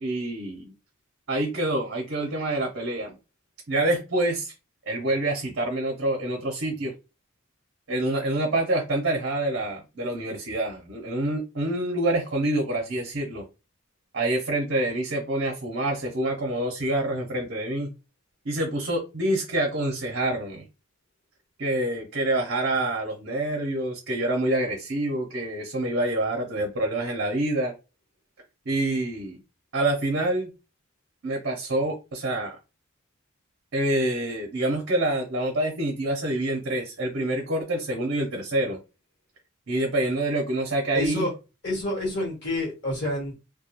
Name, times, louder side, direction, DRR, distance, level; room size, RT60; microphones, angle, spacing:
voice 1, 0.0-0.7 1.3-3.2 3.7-4.5 4.9-6.9 7.9-13.4 14.1-17.9 18.4-20.6 21.6-27.7 28.7-29.4 29.7-30.5 31.2-32.6 33.7-38.8 39.7-41.3, right 1 dB, 55° right, 0.6 m, -26 dB
voice 2, 40.9-41.3 41.6-43.4, left 1 dB, 50° left, 1.2 m, -28 dB
2.3 x 2.2 x 2.8 m
head